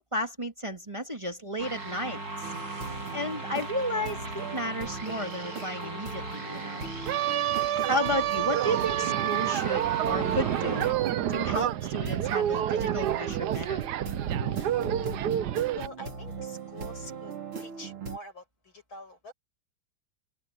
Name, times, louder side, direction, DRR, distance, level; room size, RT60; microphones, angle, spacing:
voice 1, 0.0-2.2 3.1-6.9 7.9-10.9 11.3-13.8, equal, 15° right, 1.8 m, -33 dB
sound 1, 1.6-10.9, right 2 dB, 45° right, 8.0 m, -39 dB
sound 2, 2.4-18.2, right 4 dB, 85° right, 5.2 m, -40 dB
sound 3, 7.1-15.9, right 12 dB, 65° right, 1.1 m, -28 dB
voice 2, 15.8-17.3 17.6-19.3, left 1 dB, 70° left, 8.3 m, -45 dB
omnidirectional pair, 2.3 m